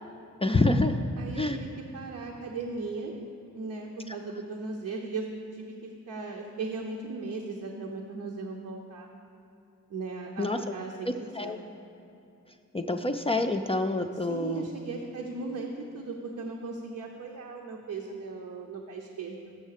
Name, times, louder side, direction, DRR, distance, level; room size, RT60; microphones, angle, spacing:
voice 1, 0.4-1.0 1.4-1.6 4.1-4.2 10.4-10.6 11.0-11.6 12.7-14.7, left 2 dB, 20° left, 5 dB, 0.3 m, -27 dB
voice 2, 1.2-3.1 3.5-5.3 5.5-9.1 9.9-11.6 14.3-19.6, right 3 dB, 80° right, 0 dB, 0.8 m, -37 dB
7.1 x 6.3 x 6.5 m, 2.8 s
cardioid pair, 85°, 31 cm